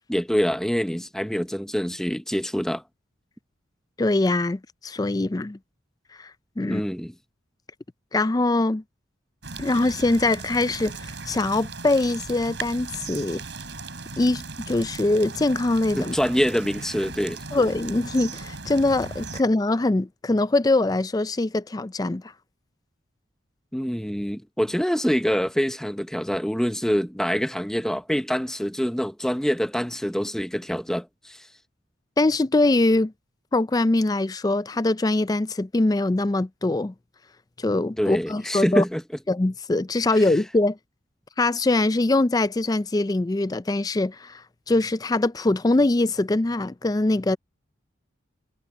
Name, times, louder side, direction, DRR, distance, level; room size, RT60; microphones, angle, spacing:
voice 1, 0.1-2.8 6.6-7.1 16.0-17.4 23.7-31.5 38.0-39.0 40.1-40.2, equal, 5° left, 0.8 m, -25 dB
voice 2, 4.0-5.6 6.2-6.3 6.6-6.8 8.1-8.8 9.6-11.0 11.3-13.4 14.2-16.1 17.5-22.2 32.2-33.1 33.5-36.9 37.6-38.8 39.3-40.8 41.4-44.4 44.7-47.4, left 2 dB, 20° left, 0.4 m, -23 dB
sound 1, 9.4-19.4, right 3 dB, 65° right, 5.7 m, -37 dB
head